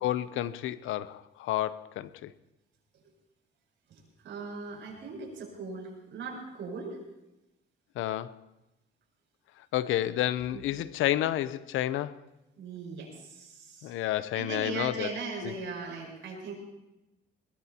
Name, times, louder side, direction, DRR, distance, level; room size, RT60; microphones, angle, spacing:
voice 1, 0.0-2.3 8.0-8.4 9.7-12.1 13.8-15.1 15.4-15.5, left 13 dB, 90° left, 0.7 m, -30 dB
voice 2, 3.9-7.0 10.5-10.6 12.6-16.5, right 4 dB, 70° right, 7.5 m, -39 dB
21.5 x 21.5 x 2.9 m
cardioid pair, 90°, 20 cm